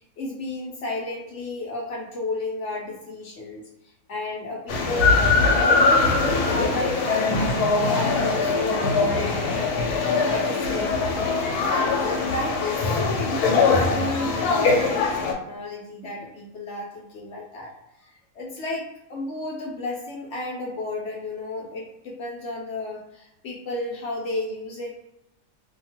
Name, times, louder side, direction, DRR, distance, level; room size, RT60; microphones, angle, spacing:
voice 1, 0.2-3.6 4.1-5.3 5.5-9.9 10.3-11.3 11.7-17.7 18.0-25.0, left 2 dB, 65° left, -2 dB, 0.8 m, -32 dB
sound 1, 4.7-15.3, left 3 dB, 90° left, 1.1 m, -22 dB
2.8 x 2.3 x 2.8 m, 0.87 s
omnidirectional pair, 1.6 m